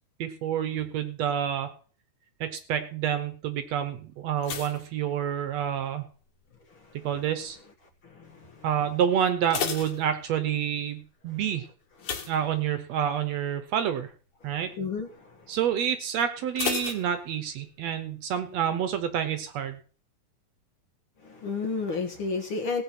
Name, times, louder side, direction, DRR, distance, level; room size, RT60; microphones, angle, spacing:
voice 1, 0.2-1.7 2.4-6.0 7.0-7.6 8.6-11.7 12.3-14.1 14.4-14.7 15.5-19.8, right 9 dB, 70° right, 10 dB, 1.9 m, -28 dB
sound 1, 4.4-5.9 6.1-6.7 7.3-7.6 7.9-8.0 8.4-8.5 9.2-10.7 12.0-13.1 13.5-13.8 14.1-14.2 16.6-17.8 18.0-18.1, left 7 dB, 75° left, 3.1 m, -34 dB
voice 2, 8.0-8.7 14.8-15.3 21.2-22.8, left 4 dB, 50° left, 4 dB, 1.9 m, -32 dB
16.5 x 7.8 x 5.9 m, 0.41 s
omnidirectional pair, 3.5 m